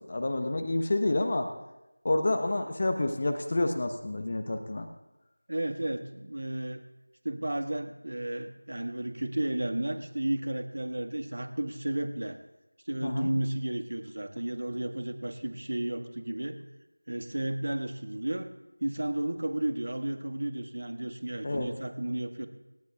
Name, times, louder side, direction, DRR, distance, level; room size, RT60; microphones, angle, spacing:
voice 1, 0.1-1.5 2.0-4.9 13.0-13.3 21.4-21.7, left 2 dB, 30° left, 6 dB, 1.0 m, -28 dB
voice 2, 5.5-6.8 7.2-12.4 12.9-16.6 17.1-18.5 18.8-22.5, right 1 dB, 55° right, 7 dB, 1.6 m, -33 dB
27.5 x 11.5 x 2.4 m, 0.99 s
figure-of-eight pair, 175°, 0 cm